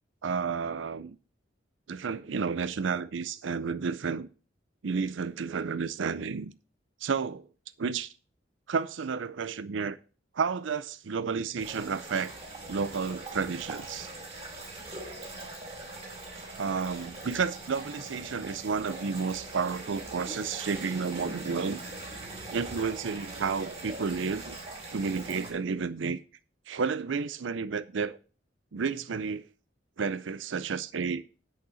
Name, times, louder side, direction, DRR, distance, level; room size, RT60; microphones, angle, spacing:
voice 1, 0.2-1.2 1.9-4.3 4.8-6.5 7.0-7.4 7.8-8.1 8.7-10.0 10.3-12.3 12.7-14.1 16.6-21.8 22.5-24.6 24.9-26.2 26.7-28.2 28.7-29.5 30.0-31.2, right 5 dB, 80° right, 0.5 m, -31 dB
sound 1, 11.6-25.5, right 2 dB, 30° right, 4.3 m, -42 dB
8.4 x 6.6 x 6.1 m
head